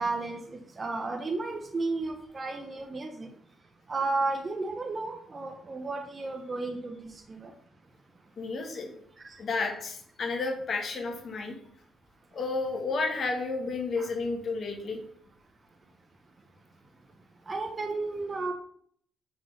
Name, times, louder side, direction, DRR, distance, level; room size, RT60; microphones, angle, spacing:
voice 1, 0.0-3.3 3.9-7.5 9.2-9.3 14.0-14.1 17.5-18.5, right 3 dB, 30° right, 3 dB, 0.9 m, -33 dB
voice 2, 8.4-9.0 9.4-11.6 12.3-15.0, left 3 dB, 50° left, 2 dB, 1.6 m, -31 dB
6.3 x 3.8 x 5.6 m, 0.63 s
cardioid pair, 90°, 0 cm